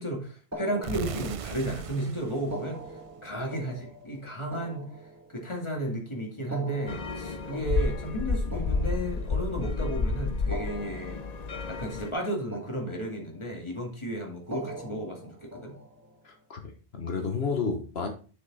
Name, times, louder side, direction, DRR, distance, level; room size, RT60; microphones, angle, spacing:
voice 1, 0.0-4.9 5.3-11.2 11.7-15.7, right 1 dB, 30° left, 1 dB, 2.4 m, -33 dB
sound 1, 0.5-1.8 2.4-5.7 6.4-9.7 10.4-12.2 12.5-13.6 14.4-16.2, right 1 dB, 15° right, 1.6 m, -43 dB
sound 2, 0.8-3.7, right 7 dB, 50° right, 0.4 m, -39 dB
sound 3, 6.9-12.1, left 4 dB, 45° left, 0.8 m, -30 dB
voice 2, 16.2-18.1, left 5 dB, 75° left, 4 dB, 1.4 m, -31 dB
7.7 x 6.6 x 4.1 m, 0.38 s
omnidirectional pair, 1.0 m